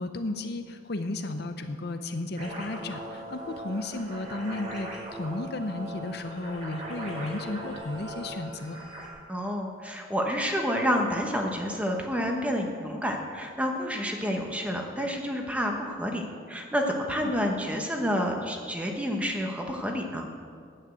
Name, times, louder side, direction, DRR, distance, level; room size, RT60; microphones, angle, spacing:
voice 1, 0.0-8.8 17.0-17.3, left 2 dB, 55° left, 7 dB, 0.7 m, -34 dB
sound 1, 2.4-9.1, right 1 dB, 35° right, 2.7 m, -39 dB
voice 2, 9.3-16.2 16.5-20.3, equal, 5° right, 1 dB, 1.1 m, -29 dB
10.0 x 8.7 x 7.8 m, 2.1 s
head